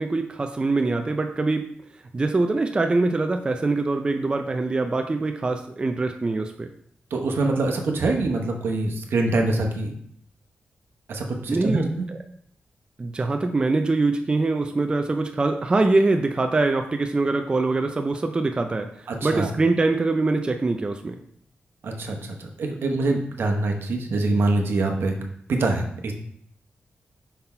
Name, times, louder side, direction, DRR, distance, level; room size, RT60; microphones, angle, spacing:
voice 1, 0.0-1.6 2.1-6.7 11.5-12.2 13.0-21.2, right 3 dB, 25° right, 5 dB, 0.4 m, -23 dB
voice 2, 7.1-9.9 11.1-12.0 19.1-19.5 21.8-25.1 25.5-26.1, right 2 dB, 75° right, 2 dB, 0.9 m, -24 dB
5.6 x 3.9 x 4.3 m, 0.66 s
wide cardioid pair, 135°, 4 cm